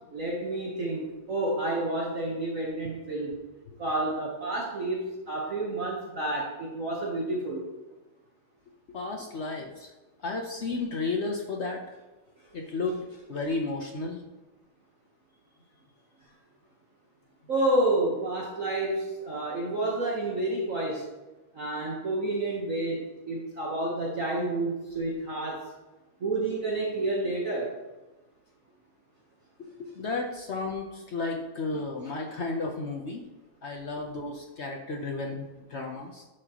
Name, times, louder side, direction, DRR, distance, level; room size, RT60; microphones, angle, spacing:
voice 1, 0.1-3.4 3.8-7.7 17.5-21.0 21.5-25.7 26.2-27.7, right 2 dB, 45° right, -3 dB, 1.4 m, -29 dB
voice 2, 8.9-9.9 10.2-11.8 12.5-14.2 29.6-33.2 33.6-36.2, left 3 dB, 80° left, 1 dB, 0.6 m, -33 dB
11.0 x 6.5 x 3.0 m, 1.1 s
omnidirectional pair, 2.3 m